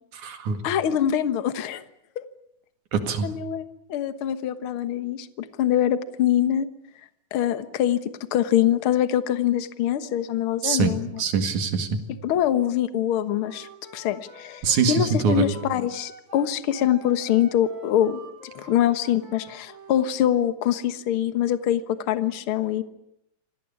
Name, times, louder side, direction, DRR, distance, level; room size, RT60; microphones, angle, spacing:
voice 1, 0.1-0.6 2.9-3.3 10.6-10.9 11.2-12.0 14.6-15.5, right 6 dB, 65° right, 8 dB, 3.4 m, -23 dB
voice 2, 0.6-1.8 2.2-2.3 3.2-6.7 7.3-8.0 8.3-11.2 12.2-18.2 18.5-22.8, left 11 dB, 55° left, 12 dB, 1.7 m, -24 dB
Wind instrument woodwind instrument, 13.4-20.1, right 2 dB, 20° right, 4.0 m, -47 dB
26.0 x 18.5 x 9.8 m, 0.80 s
omnidirectional pair, 3.8 m